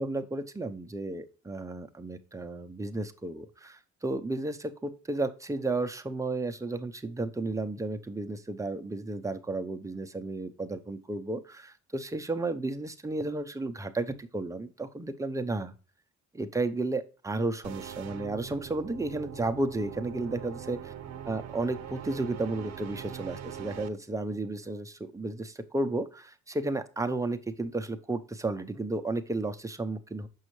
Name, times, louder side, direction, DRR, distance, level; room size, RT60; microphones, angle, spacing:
voice 1, 0.0-15.7 16.3-20.8 21.3-30.3, right 2 dB, 10° right, 7 dB, 0.6 m, -33 dB
sound 1, 17.6-23.9, right 9 dB, 60° right, 0.8 m, -42 dB
6.2 x 5.5 x 3.1 m, 0.35 s
cardioid pair, 90°, 30 cm